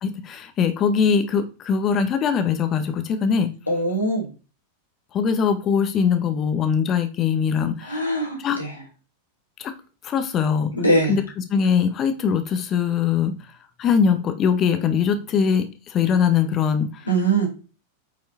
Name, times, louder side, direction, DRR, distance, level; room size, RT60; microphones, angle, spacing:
voice 1, 0.0-3.5 5.1-8.0 8.4-8.6 9.6-9.7 10.0-10.7 11.1-13.3 13.8-17.0, left 6 dB, 30° left, 8 dB, 1.6 m, -22 dB
voice 2, 3.7-4.3 7.8-8.8 10.7-11.2 17.0-17.5, right 2 dB, 85° left, -1 dB, 4.4 m, -22 dB
9.2 x 5.7 x 4.4 m, 0.34 s
figure-of-eight pair, 90°, 0 cm